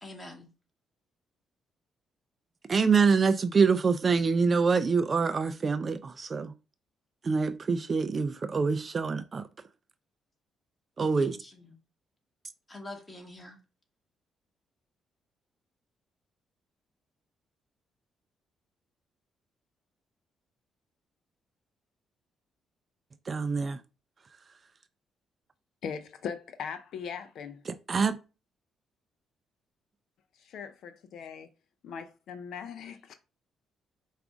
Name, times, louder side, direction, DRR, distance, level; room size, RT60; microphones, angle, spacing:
voice 1, 0.0-0.5 11.2-11.8 12.7-13.6, left 2 dB, 20° left, 1.4 m, -45 dB
voice 2, 2.7-6.5 7.2-9.5 11.0-11.4 23.3-23.8 27.7-28.2, right 5 dB, 40° right, 0.3 m, -25 dB
voice 3, 25.8-27.6 30.4-31.5 31.8-33.1, left 7 dB, 75° left, 0.4 m, -39 dB
4.9 x 2.4 x 3.5 m
cardioid pair, 90°, 0 cm